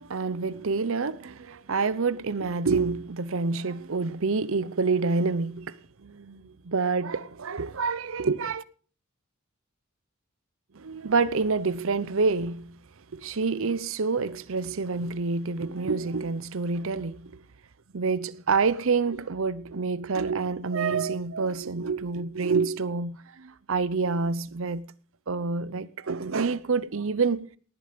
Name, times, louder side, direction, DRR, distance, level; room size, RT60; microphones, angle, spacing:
voice 1, 0.0-8.6 10.7-12.8 13.1-17.4 17.9-24.9 25.3-27.5, right 4 dB, 65° right, 0.7 m, -27 dB
18.5 x 10.0 x 5.2 m
head